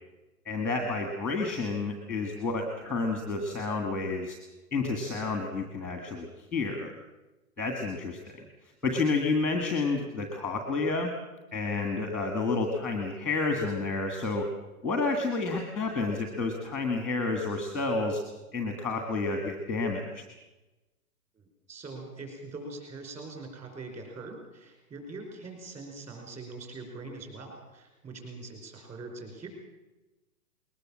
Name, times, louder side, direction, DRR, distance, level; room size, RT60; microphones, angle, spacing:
voice 1, 0.4-4.4 4.7-6.9 7.6-8.4 8.8-11.1 11.5-14.5 14.8-18.2 18.5-20.2, left 3 dB, ahead, 4 dB, 1.5 m, -30 dB
voice 2, 21.4-29.5, right 3 dB, 15° right, 3 dB, 5.2 m, -43 dB
21.0 x 20.0 x 7.3 m, 1.1 s
hypercardioid pair, 165°, 46 cm